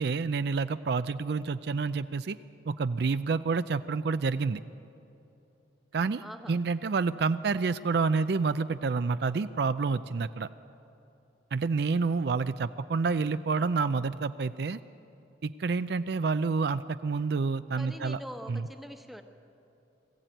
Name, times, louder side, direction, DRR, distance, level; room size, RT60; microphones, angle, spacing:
voice 1, 0.0-2.4 2.7-4.6 5.9-10.5 11.5-14.8 15.4-18.2 18.5-18.7, right 4 dB, 60° right, 12 dB, 0.4 m, -28 dB
voice 2, 6.2-6.6 17.8-19.2, equal, ahead, 5 dB, 1.0 m, -43 dB
21.5 x 15.0 x 9.1 m, 2.8 s
head